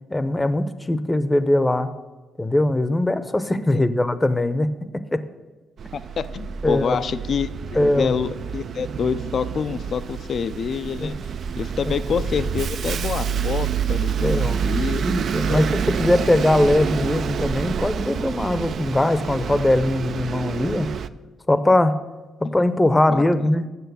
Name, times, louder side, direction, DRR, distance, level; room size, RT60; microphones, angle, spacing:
voice 1, 0.1-1.9 2.4-4.7 4.9-5.2 6.6-7.0 7.7-8.1 11.0-11.1 14.2-14.6 14.9-20.9 21.5-21.9 22.4-23.7, left 1 dB, 15° left, 13 dB, 0.7 m, -21 dB
Bus, 5.8-21.1, right 7 dB, 55° right, 0.4 m, -28 dB
voice 2, 5.9-7.5 7.8-11.1 11.6-15.1 15.5-15.6 22.4-22.5 23.1-23.2, left 6 dB, 55° left, 14 dB, 0.4 m, -27 dB
8.1 x 7.3 x 6.9 m, 1.2 s
cardioid pair, 90°, 0 cm